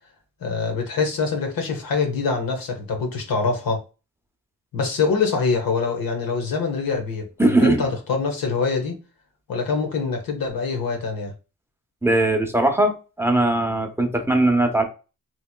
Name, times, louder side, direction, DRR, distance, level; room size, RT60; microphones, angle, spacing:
voice 1, 0.4-3.8 4.7-9.0 9.5-11.3, left 4 dB, 85° left, 1.0 m, -24 dB
voice 2, 7.4-7.8 12.0-14.8, right 1 dB, 5° right, 0.7 m, -19 dB
3.1 x 2.8 x 2.2 m
cardioid pair, 60°, 34 cm